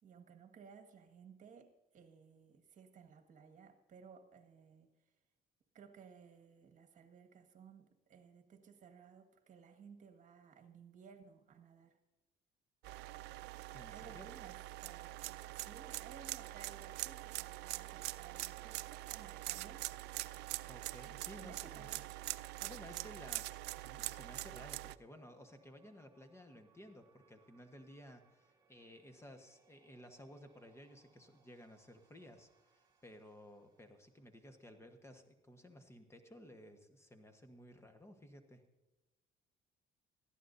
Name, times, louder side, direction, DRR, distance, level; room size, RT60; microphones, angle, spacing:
voice 1, 0.0-4.9 5.7-12.0 13.9-20.0 21.3-22.1, right 6 dB, 50° right, 6 dB, 1.8 m, -58 dB
sound 1, 12.8-25.0, right 18 dB, 85° right, 0.4 m, -44 dB
voice 2, 13.7-14.3 20.7-21.9 22.6-38.6, equal, 15° left, 6 dB, 1.3 m, -56 dB
sound 2, 14.8-34.7, right 4 dB, 25° right, 2.2 m, -73 dB
19.5 x 14.5 x 2.7 m, 1.1 s
cardioid pair, 110°, 17 cm